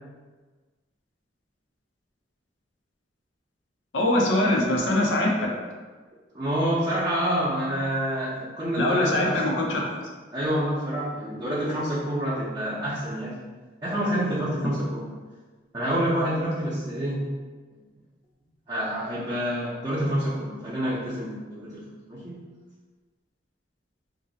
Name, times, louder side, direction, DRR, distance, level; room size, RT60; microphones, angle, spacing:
voice 1, 3.9-5.5 8.8-9.8, left 1 dB, 90° left, -1 dB, 0.6 m, -22 dB
voice 2, 6.3-9.5 10.3-13.4 13.8-15.1 15.7-17.3 18.7-22.4, equal, 25° right, -9 dB, 0.6 m, -27 dB
2.6 x 2.0 x 3.9 m, 1.4 s
head